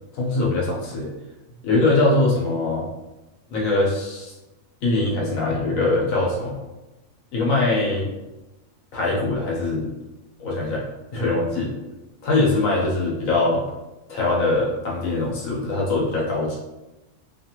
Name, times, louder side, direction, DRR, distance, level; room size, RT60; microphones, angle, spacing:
voice 1, 0.1-1.1 1.6-2.9 3.5-4.3 4.8-6.6 7.3-8.1 8.9-9.9 10.4-10.8 11.1-11.7 12.2-13.6 14.1-16.6, left 2 dB, 80° left, -4 dB, 1.2 m, -22 dB
2.8 x 2.4 x 2.8 m, 1.0 s
omnidirectional pair, 1.4 m